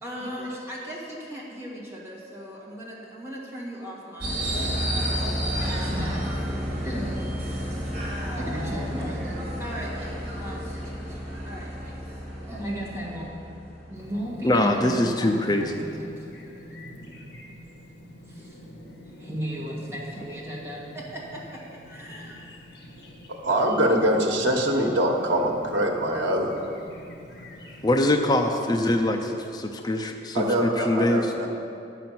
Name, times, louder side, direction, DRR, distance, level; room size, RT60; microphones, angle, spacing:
voice 1, 0.0-4.6 5.5-6.3 6.8-7.3 8.3-11.2 11.5-12.0 12.4-13.3 13.9-16.4 17.5-18.6 19.2-21.6 21.9-22.3 29.8-30.1, equal, 15° right, -6 dB, 2.1 m, -36 dB
sound 1, 4.2-14.1, equal, 35° right, 2.8 m, -31 dB
Chirp tweet, 13.9-28.2, left 1 dB, 65° left, 1.5 m, -46 dB
voice 2, 14.4-15.8 27.8-31.3, left 1 dB, 20° left, 3 dB, 0.5 m, -23 dB
voice 3, 23.4-26.6 30.3-31.5, right 1 dB, 85° right, 0 dB, 1.2 m, -23 dB
10.5 x 5.8 x 7.6 m, 2.6 s
head